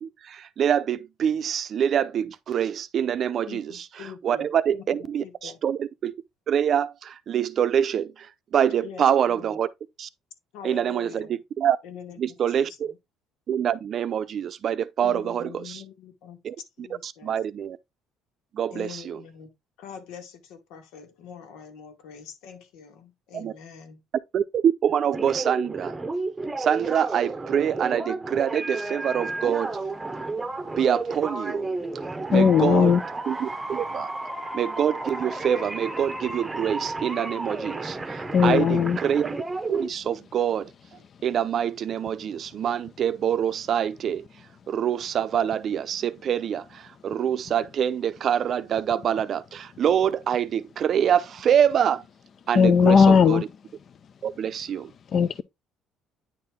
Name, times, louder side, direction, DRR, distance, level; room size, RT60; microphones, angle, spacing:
voice 1, 0.0-6.1 6.5-9.7 10.0-10.1 10.6-11.8 12.2-12.9 13.5-15.8 16.4-16.6 17.0-17.8 18.5-19.2 23.3-23.5 24.3-26.0 26.6-29.8 30.8-31.8 32.3-33.0 33.3-34.1 34.5-39.3 39.7-40.7 41.2-44.2 44.7-52.0 52.5-53.5 54.2-54.9, right 9 dB, 40° right, 0.6 m, -25 dB
voice 2, 3.5-5.6 8.8-9.6 10.5-11.4 11.8-13.0 15.0-16.4 16.8-17.3 18.7-19.5 19.8-24.0, left 7 dB, 90° left, 2.1 m, -44 dB
sound 1, 25.1-39.9, right 2 dB, 10° right, 0.8 m, -32 dB
voice 3, 32.3-33.0 38.3-39.0 52.6-53.4 55.1-55.4, left 6 dB, 35° left, 0.4 m, -17 dB
9.6 x 4.3 x 3.6 m
cardioid pair, 155°, 0 cm